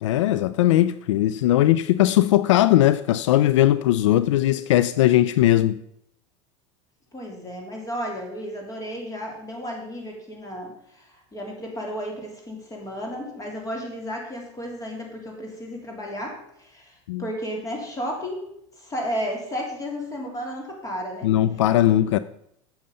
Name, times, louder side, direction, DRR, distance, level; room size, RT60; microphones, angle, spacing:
voice 1, 0.0-5.8 17.1-17.2 21.2-22.2, left 13 dB, 80° left, 0.4 m, -19 dB
voice 2, 7.1-18.5 18.8-21.3 22.0-22.1, equal, 20° left, 3.3 m, -33 dB
8.7 x 6.5 x 5.5 m
hypercardioid pair, 90°, 15 cm